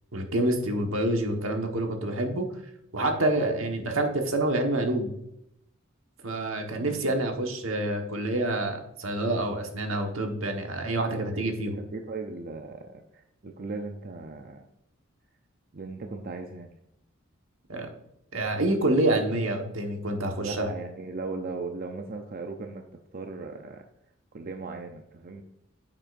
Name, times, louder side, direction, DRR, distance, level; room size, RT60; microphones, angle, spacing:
voice 1, 0.1-2.5 2.9-5.1 6.2-11.8 17.7-17.9 18.3-20.7, right 1 dB, 75° right, 3 dB, 1.3 m, -27 dB
voice 2, 3.3-3.7 6.7-7.1 9.9-10.0 11.2-14.7 15.7-16.7 20.4-22.9 23.1-23.8 24.3-25.4, right 3 dB, 45° right, 4 dB, 0.6 m, -38 dB
9.8 x 7.4 x 2.6 m, 0.80 s
head